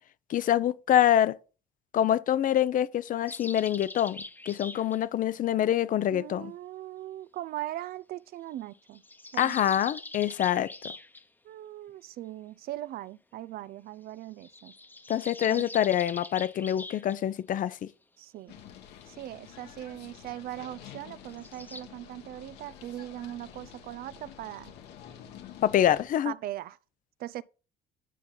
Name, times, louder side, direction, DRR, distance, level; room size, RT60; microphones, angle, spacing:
voice 1, 0.3-1.4 1.9-6.5 9.4-10.9 15.1-17.9 25.6-26.3, left 11 dB, 55° left, 0.6 m, -26 dB
sound 1, 3.3-5.0 8.7-11.2 14.4-17.2 21.3-21.8, left 2 dB, 10° left, 0.9 m, -43 dB
voice 2, 6.1-9.0 9.3-9.6 11.4-14.7 15.5-15.6 18.2-18.5 19.1-24.7 26.3-26.8 27.2-27.4, right 14 dB, 60° right, 0.4 m, -40 dB
sound 2, 18.5-26.1, left 9 dB, 85° left, 1.8 m, -49 dB
9.9 x 5.8 x 3.9 m
cardioid pair, 110°, 17 cm